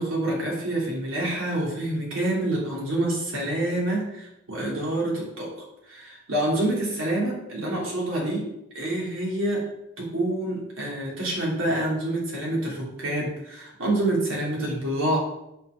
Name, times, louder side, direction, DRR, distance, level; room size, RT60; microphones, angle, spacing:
voice 1, 0.0-5.5 5.9-8.5 8.7-9.7 10.0-15.2, right 1 dB, 75° right, -3 dB, 3.2 m, -27 dB
8.2 x 4.6 x 6.6 m, 0.86 s
head